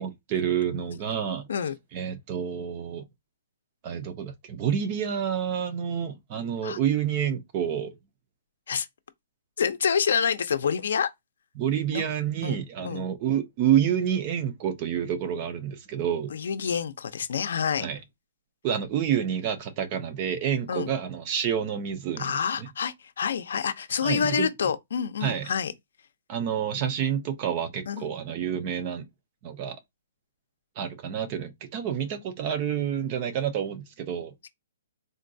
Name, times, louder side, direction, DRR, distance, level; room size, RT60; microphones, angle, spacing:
voice 1, 0.0-1.5 1.9-3.1 3.8-7.9 11.6-16.3 17.8-18.0 18.6-22.3 22.6-22.7 24.0-24.5 25.2-25.5 26.3-29.0 29.4-29.8 30.8-34.3, right 9 dB, 25° right, 0.4 m, -28 dB
voice 2, 9.6-11.1 11.9-12.0 12.4-12.6 12.8-13.0 16.3-17.9 20.7-20.9 22.2-25.7 27.9-28.1, left 7 dB, 65° left, 0.5 m, -27 dB
3.7 x 2.3 x 2.6 m
hypercardioid pair, 170°, 0 cm